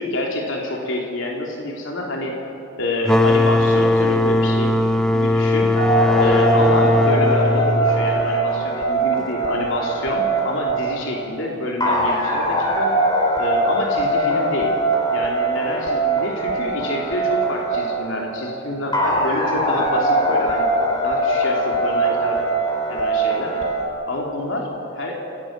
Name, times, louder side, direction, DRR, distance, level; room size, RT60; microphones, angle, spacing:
voice 1, 0.0-2.3 2.8-4.8 5.1-5.7 6.2-12.9 13.4-14.7 15.1-20.6 21.0-22.5 22.9-23.7 24.1-24.7 24.9-25.2, left 1 dB, 75° left, 0 dB, 3.2 m, -27 dB
sound 1, 3.0-8.5, left 1 dB, 5° left, 0.8 m, -18 dB
sound 2, 5.8-23.9, right 1 dB, 20° left, 3.4 m, -21 dB
28.0 x 17.0 x 7.5 m, 2.9 s
head